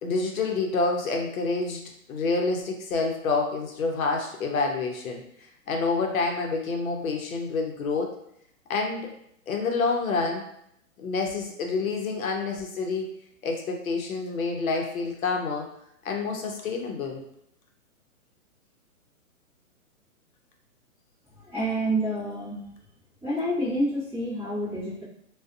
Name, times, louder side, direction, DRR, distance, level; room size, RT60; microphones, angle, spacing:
voice 1, 0.0-1.8 2.1-5.2 5.7-8.1 8.7-9.1 9.5-10.4 11.0-13.1 13.4-15.6 16.0-17.2, left 4 dB, 70° left, 2 dB, 0.7 m, -28 dB
voice 2, 21.3-22.6 23.2-25.0, right 1 dB, 5° right, -15 dB, 0.7 m, -28 dB
2.5 x 2.2 x 2.4 m, 0.74 s
hypercardioid pair, 155°, 43 cm